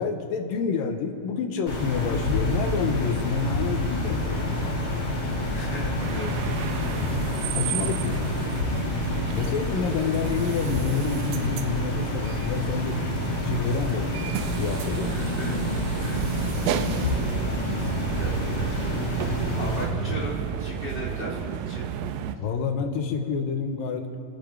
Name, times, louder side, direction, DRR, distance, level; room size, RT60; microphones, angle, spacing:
voice 1, 0.0-4.7 7.5-8.3 9.3-14.3 14.6-15.1 22.4-24.2, left 5 dB, 75° left, 5 dB, 2.6 m, -28 dB
sound 1, 1.7-19.8, left 1 dB, 35° left, 4.1 m, -28 dB
voice 2, 5.5-6.4 6.7-7.0 15.1-15.6 16.0-16.3 17.7-21.8, equal, 20° right, -5 dB, 2.1 m, -37 dB
sound 2, 6.0-22.4, right 9 dB, 80° right, 2.3 m, -32 dB
29.5 x 10.0 x 4.6 m, 2.4 s
omnidirectional pair, 4.2 m